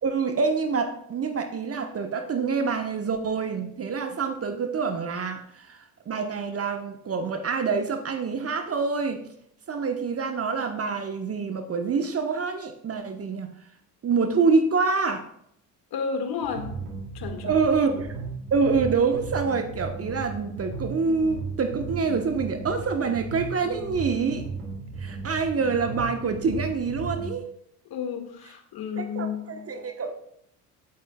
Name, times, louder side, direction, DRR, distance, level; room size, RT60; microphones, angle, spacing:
voice 1, 0.0-9.2 9.7-13.5 14.0-15.2 17.4-18.1 18.5-24.5 25.0-27.4 29.0-30.2, right 5 dB, 30° right, 7 dB, 1.2 m, -26 dB
voice 2, 15.9-16.9 17.1-17.6 27.9-29.8, left 6 dB, 45° left, 5 dB, 2.1 m, -32 dB
sound 1, 16.4-27.3, right 4 dB, 70° right, 2.8 m, -36 dB
18.0 x 8.7 x 2.4 m, 0.71 s
figure-of-eight pair, 60°, 49 cm